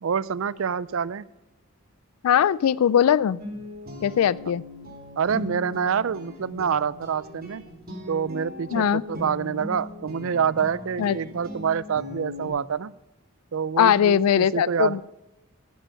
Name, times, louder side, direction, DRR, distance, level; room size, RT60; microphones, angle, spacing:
voice 1, 0.0-1.2 5.2-7.6 8.1-12.9 13.5-15.0, right 7 dB, 65° right, 20 dB, 0.4 m, -27 dB
voice 2, 2.2-3.4 4.0-4.6 8.7-9.0 11.0-11.2 13.8-15.0, left 9 dB, 80° left, 21 dB, 0.3 m, -20 dB
Guitar, 3.4-12.5, left 2 dB, 45° right, 3.0 m, -39 dB
12.0 x 9.9 x 5.7 m, 0.95 s
head